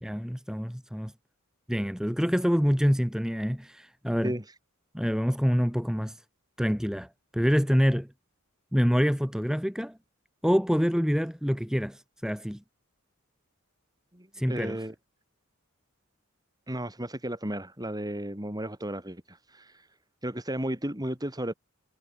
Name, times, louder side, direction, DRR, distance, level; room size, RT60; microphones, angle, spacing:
voice 1, 0.0-1.1 1.7-4.3 4.9-6.2 6.6-7.1 7.3-8.1 8.7-10.0 10.4-12.6 14.4-14.8, equal, 5° right, 4.0 m, -26 dB
voice 2, 4.2-4.5 14.1-14.9 16.7-19.9 20.2-21.5, right 1 dB, 20° right, 6.1 m, -34 dB
head